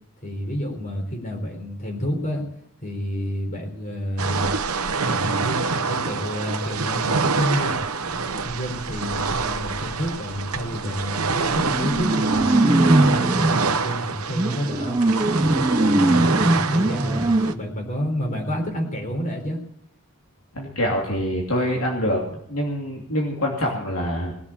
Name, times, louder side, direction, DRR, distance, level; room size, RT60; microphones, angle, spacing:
voice 1, 0.2-2.5 2.8-4.5 5.1-11.2 11.5-15.0 15.6-19.6, equal, 35° left, 2 dB, 4.1 m, -29 dB
sound 1, 4.2-17.5, right 4 dB, 85° right, 1.0 m, -26 dB
sound 2, 10.7-10.9 11.2-13.7 14.3-17.5, right 1 dB, 20° right, 0.6 m, -20 dB
voice 2, 20.5-24.3, equal, 80° left, -2 dB, 2.9 m, -25 dB
20.5 x 7.2 x 8.7 m, 0.71 s
head